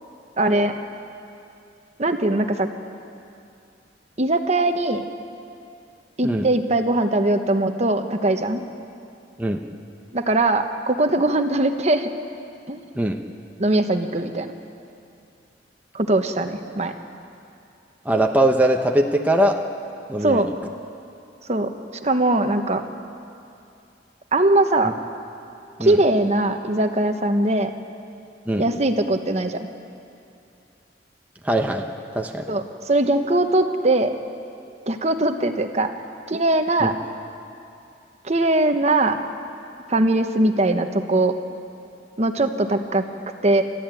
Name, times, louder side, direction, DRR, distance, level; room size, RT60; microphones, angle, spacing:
voice 1, 0.4-0.8 2.0-2.7 4.2-5.0 6.2-8.6 10.1-12.1 12.7-12.8 13.6-14.5 15.9-16.9 20.2-20.5 21.5-21.7 22.0-22.8 24.3-24.9 25.8-27.7 28.6-29.7 32.5-34.1 34.9-35.9 36.3-36.9 38.2-39.2 39.9-41.3 42.2-43.0 43.4-43.6, right 2 dB, 35° right, 6 dB, 1.1 m, -20 dB
voice 2, 18.0-19.6 20.1-20.5 25.8-26.0 28.5-28.6 31.4-31.9 32.1-32.5 36.8-36.9, right 1 dB, 10° right, 2 dB, 0.9 m, -21 dB
30.0 x 13.5 x 9.1 m, 2.6 s
head